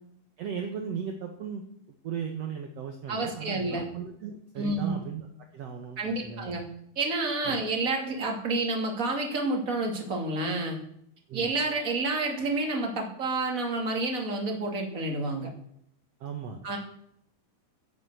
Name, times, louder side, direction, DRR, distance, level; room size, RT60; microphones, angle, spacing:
voice 1, 0.4-1.6 2.0-5.3 5.5-6.5 7.4-7.6 11.3-11.5 16.2-16.6, right 7 dB, 60° right, 2 dB, 1.7 m, -36 dB
voice 2, 3.1-3.9 4.6-4.9 6.0-6.6 7.0-10.8 11.3-15.5 16.6-16.8, right 2 dB, 25° right, 1 dB, 2.5 m, -29 dB
11.0 x 10.5 x 8.1 m, 0.71 s
omnidirectional pair, 4.6 m